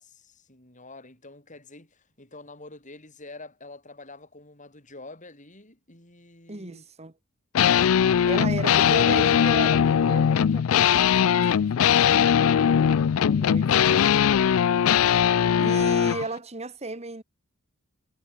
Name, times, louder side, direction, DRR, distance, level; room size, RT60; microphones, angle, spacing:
voice 1, 0.0-6.8, left 2 dB, 35° left, 8.0 m, -47 dB
voice 2, 6.5-7.1 7.9-12.3 12.6-14.1 15.6-17.2, right 3 dB, 30° right, 1.8 m, -36 dB
sound 1, 7.6-16.2, left 8 dB, 85° left, 0.4 m, -20 dB
head